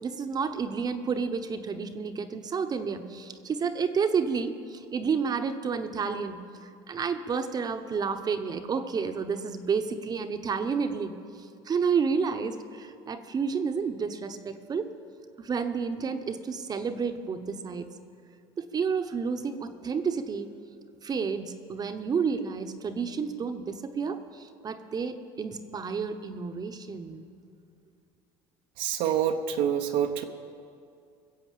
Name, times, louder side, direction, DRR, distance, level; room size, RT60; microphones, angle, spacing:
voice 1, 0.0-6.5 6.9-11.2 11.7-14.9 15.4-17.9 18.6-20.6 21.0-27.3, right 5 dB, 35° right, 8 dB, 1.1 m, -30 dB
voice 2, 28.8-30.2, right 9 dB, 70° right, 3 dB, 1.0 m, -26 dB
20.0 x 7.7 x 7.6 m, 2.4 s
supercardioid pair, 85°, 12 cm